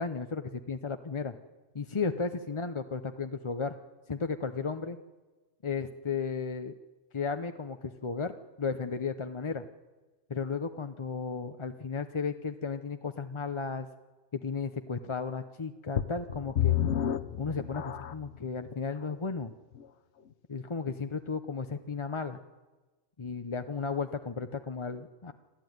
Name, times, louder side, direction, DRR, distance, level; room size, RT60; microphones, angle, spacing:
voice 1, 0.0-1.3 1.7-3.8 4.1-5.0 5.6-6.8 7.1-9.7 10.3-13.9 14.3-16.8 17.4-19.5 20.5-22.4 23.2-25.3, left 5 dB, 30° left, 8 dB, 0.6 m, -34 dB
sound 1, 16.0-18.4 19.0-19.1 19.7-19.8, left 10 dB, 65° left, 1.1 m, -30 dB
28.5 x 13.0 x 9.4 m, 1.2 s
omnidirectional pair, 1.2 m